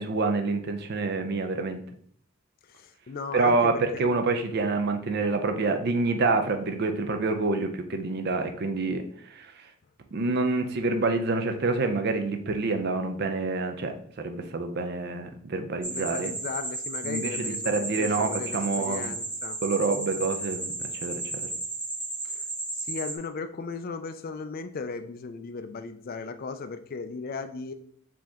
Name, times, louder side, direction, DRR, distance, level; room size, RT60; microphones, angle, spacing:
voice 1, 0.0-1.8 3.3-9.0 9.3-9.5 10.1-16.3 17.0-19.1 19.6-20.7 21.0-21.5, right 3 dB, 50° right, 6 dB, 0.5 m, -27 dB
voice 2, 2.8-4.0 15.8-17.6 18.0-19.6 22.2-22.4 22.7-27.7, left 4 dB, 40° left, 8 dB, 0.4 m, -36 dB
sound 1, 15.8-23.2, right 2 dB, 10° right, 0.7 m, -34 dB
5.0 x 2.8 x 3.6 m, 0.62 s
head